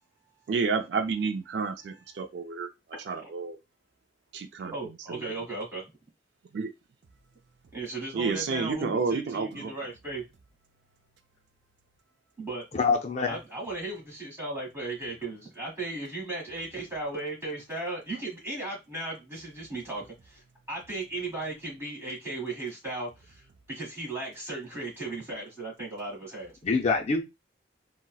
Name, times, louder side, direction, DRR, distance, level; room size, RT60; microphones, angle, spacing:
voice 1, 0.5-2.7 3.1-3.6 4.3-4.7 5.1-5.2 6.5-6.7 8.1-9.7, right 5 dB, 65° right, 6 dB, 0.4 m, -30 dB
voice 2, 4.6-5.8 7.7-10.2 12.4-12.7 13.3-26.6, right 2 dB, 15° right, -2 dB, 1.5 m, -36 dB
voice 3, 12.7-13.4 26.6-27.2, left 4 dB, 40° left, 3 dB, 0.4 m, -25 dB
3.9 x 2.0 x 2.3 m, 0.23 s
head